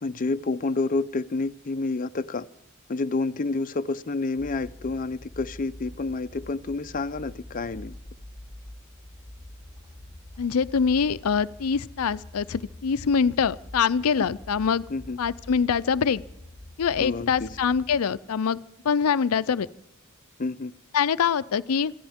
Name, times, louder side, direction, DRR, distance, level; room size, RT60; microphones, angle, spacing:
voice 1, 0.0-2.5 2.9-7.9 14.2-14.3 14.9-15.2 17.0-17.5 20.4-20.7, left 3 dB, 40° left, 10 dB, 0.5 m, -29 dB
sound 1, 4.4-18.0, left 1 dB, 15° right, 1.6 m, -45 dB
voice 2, 10.4-14.8 15.2-16.2 16.8-18.6 18.8-19.7 20.9-21.9, left 6 dB, 90° left, 14 dB, 0.5 m, -24 dB
26.5 x 15.0 x 3.6 m, 0.83 s
head